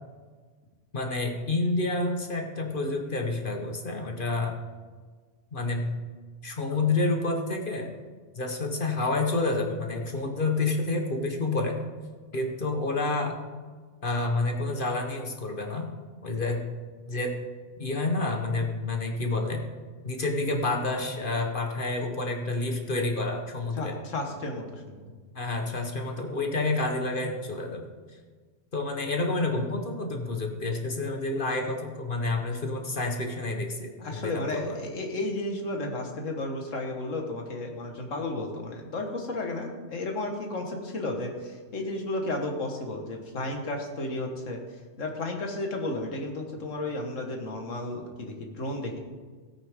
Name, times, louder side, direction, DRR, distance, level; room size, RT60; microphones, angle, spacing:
voice 1, 0.9-4.6 5.5-5.9 6.4-7.9 8.3-11.8 12.3-13.4 14.0-15.9 16.2-16.7 17.1-17.4 17.8-19.6 20.0-24.0 25.3-27.9 28.7-34.8, left 2 dB, 45° left, 3 dB, 1.3 m, -29 dB
voice 2, 23.8-25.1 34.0-44.6 45.0-49.0, left 2 dB, 85° left, 2 dB, 1.9 m, -33 dB
16.5 x 8.7 x 3.7 m, 1.5 s
omnidirectional pair, 1.3 m